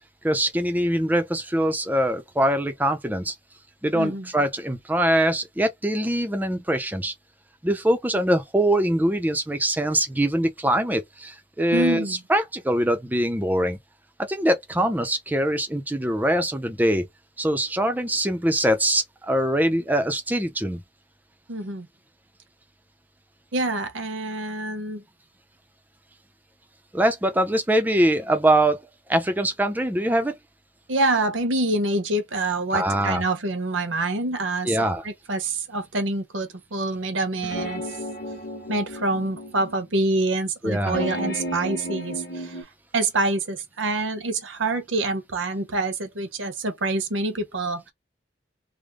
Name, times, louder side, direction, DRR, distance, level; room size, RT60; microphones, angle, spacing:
voice 1, 0.2-3.3 3.8-7.1 7.6-13.8 14.2-17.0 17.4-20.8 26.9-28.8 29.1-30.4 32.7-33.2 34.6-35.0 40.6-41.0, right 1 dB, 10° right, 0.5 m, -23 dB
voice 2, 3.9-4.3 11.7-12.2 21.5-21.9 23.5-25.0 30.9-37.9 38.7-42.6 42.9-47.9, right 2 dB, 80° right, 1.0 m, -26 dB
sound 1, 37.4-39.8 40.8-42.6, equal, 45° left, 1.5 m, -33 dB
3.4 x 2.1 x 3.6 m
head